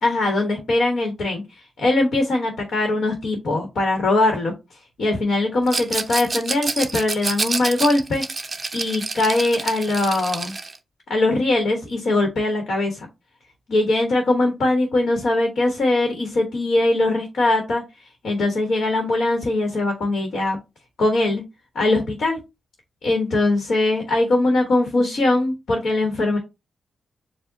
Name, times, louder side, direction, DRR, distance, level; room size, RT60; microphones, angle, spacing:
voice 1, 0.0-1.4 1.8-4.5 5.0-8.2 8.7-10.6 11.1-13.1 13.7-17.8 18.2-20.6 21.0-21.4 21.7-22.4 23.0-26.4, left 2 dB, 65° left, 3 dB, 1.2 m, -21 dB
Rattle, 5.7-10.8, right 3 dB, 25° right, 0.5 m, -28 dB
4.8 x 2.2 x 3.9 m, 0.24 s
wide cardioid pair, 165°, 0 cm